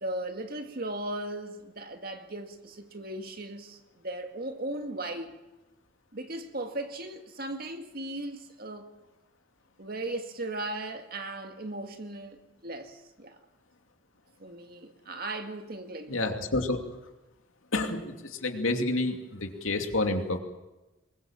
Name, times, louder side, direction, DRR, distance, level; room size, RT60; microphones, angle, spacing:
voice 1, 0.0-5.3 6.1-8.9 9.8-13.4 14.4-16.2, right 1 dB, 50° right, 2.0 m, -37 dB
voice 2, 16.1-16.8 17.7-20.4, left 2 dB, 90° left, 2.7 m, -29 dB
23.0 x 21.0 x 7.4 m
head